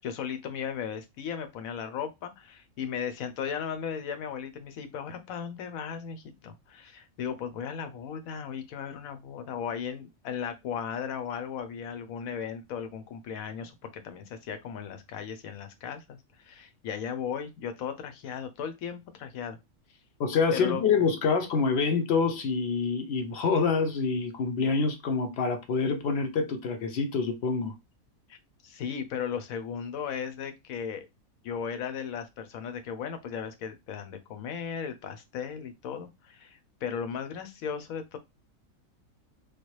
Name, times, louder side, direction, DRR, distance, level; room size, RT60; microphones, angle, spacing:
voice 1, 0.0-19.6 20.5-20.8 28.3-28.4 28.6-31.1 31.4-38.2, left 7 dB, 80° left, 1.0 m, -36 dB
voice 2, 20.2-27.7, left 5 dB, 60° left, 0.7 m, -26 dB
3.2 x 2.3 x 3.0 m
omnidirectional pair, 1.5 m